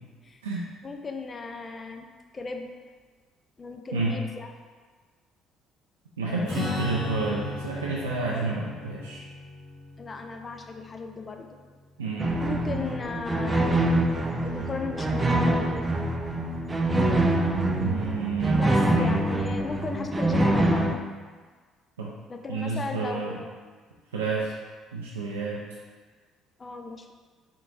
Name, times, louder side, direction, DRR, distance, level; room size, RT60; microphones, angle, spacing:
voice 1, 0.8-2.1 2.3-2.7 3.6-4.5 6.3-7.1 10.0-11.5 12.4-13.8 14.4-15.9 18.5-21.0 22.3-23.5 26.6-27.1, left 3 dB, 35° left, 4 dB, 0.5 m, -36 dB
voice 2, 6.2-9.2 12.0-12.4 17.7-18.6 19.0-19.1 22.0-22.1 22.5-23.4 24.1-24.5 24.9-25.6, right 3 dB, 90° right, -5 dB, 0.4 m, -30 dB
Strum, 6.5-12.1, left 2 dB, 15° left, 1.4 m, -36 dB
sound 1, 12.2-20.9, right 1 dB, 25° right, 0.4 m, -25 dB
4.6 x 3.6 x 2.6 m, 1.5 s
hypercardioid pair, 55°, 0 cm